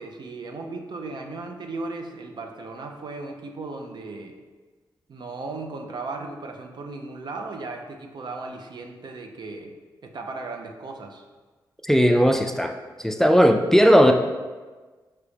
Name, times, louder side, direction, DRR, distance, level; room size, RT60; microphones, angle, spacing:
voice 1, 0.0-4.4 5.1-9.7 10.0-11.2, right 3 dB, 60° right, 3 dB, 0.5 m, -36 dB
voice 2, 11.8-12.7 13.0-14.1, equal, 5° left, 4 dB, 0.3 m, -17 dB
4.9 x 2.9 x 3.3 m, 1.3 s
cardioid pair, 55°, 8 cm